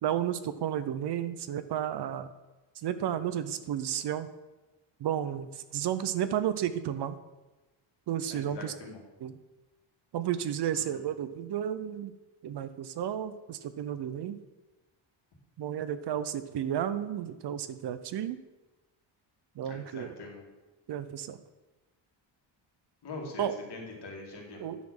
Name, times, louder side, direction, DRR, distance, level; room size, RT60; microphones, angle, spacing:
voice 1, 0.0-2.3 2.8-4.3 5.0-7.1 8.1-8.7 9.2-9.3 10.1-12.1 12.4-14.4 15.6-18.4 19.6-20.1 20.9-21.4 23.4-23.6 24.6-24.8, right 10 dB, 60° right, 12 dB, 0.6 m, -32 dB
voice 2, 8.3-9.0 10.7-11.0 19.6-20.4 23.0-24.6, left 3 dB, 55° left, -1 dB, 2.3 m, -43 dB
10.0 x 4.2 x 6.4 m, 1.1 s
wide cardioid pair, 160°, 47 cm